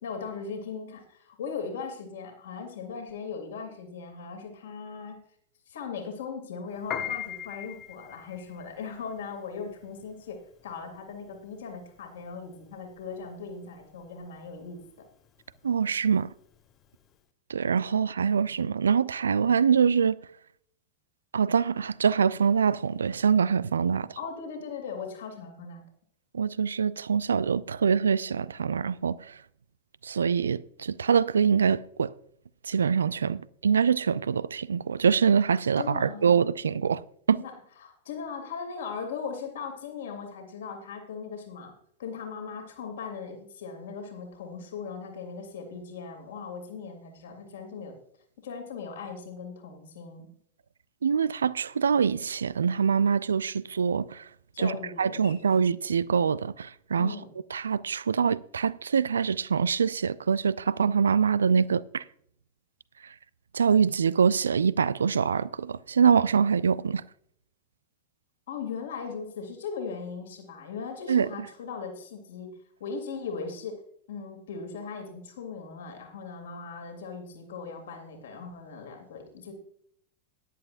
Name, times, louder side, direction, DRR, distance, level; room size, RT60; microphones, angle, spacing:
voice 1, 0.0-5.2 5.7-14.8 24.2-25.8 35.8-36.3 37.4-37.5 37.8-41.7 42.0-47.9 48.4-50.3 54.5-55.5 57.0-57.3 68.5-72.5 72.8-73.8 74.1-79.5, left 5 dB, 60° left, 2.7 m, -38 dB
Piano, 6.8-17.2, left 10 dB, 30° left, 1.1 m, -41 dB
voice 2, 15.6-16.3 17.5-20.2 21.3-24.2 26.3-29.4 30.0-32.1 32.6-37.0 37.3-37.4 51.0-54.3 54.6-57.1 57.5-62.0 63.0-63.1 63.5-67.0 71.1-71.3, right 6 dB, 70° right, 0.4 m, -24 dB
16.5 x 11.0 x 2.6 m
figure-of-eight pair, 90°, 0 cm